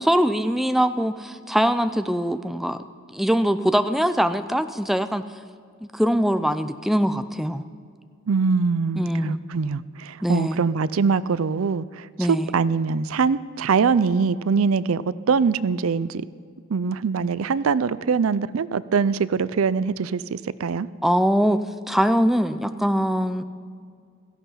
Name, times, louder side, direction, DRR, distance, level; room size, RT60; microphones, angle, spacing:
voice 1, 0.0-2.8 3.1-5.2 5.8-7.6 9.0-9.4 10.2-10.6 12.2-12.5 21.0-21.6 21.9-23.4, equal, ahead, 10 dB, 0.4 m, -22 dB
voice 2, 8.3-16.2 16.7-20.9, right 5 dB, 80° right, 18 dB, 0.5 m, -23 dB
16.5 x 15.0 x 5.6 m, 2.2 s
head